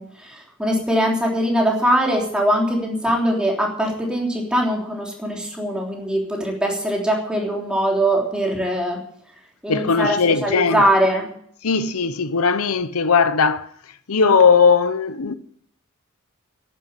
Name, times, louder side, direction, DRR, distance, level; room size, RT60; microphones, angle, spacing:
voice 1, 0.0-9.0 9.6-11.3, equal, 5° right, 3.4 m, -22 dB
voice 2, 9.7-10.8 11.6-13.7 14.1-15.3, left 5 dB, 85° left, 0.8 m, -18 dB
11.5 x 9.6 x 9.7 m
head